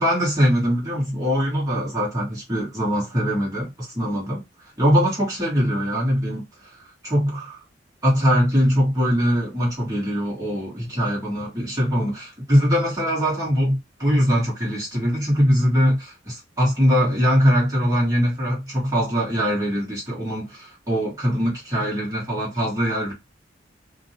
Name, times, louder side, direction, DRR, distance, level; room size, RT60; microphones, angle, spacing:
voice 1, 0.0-4.4 4.8-6.4 7.0-7.6 8.0-23.1, equal, 20° right, 1.3 m, -22 dB
2.5 x 2.2 x 2.7 m
head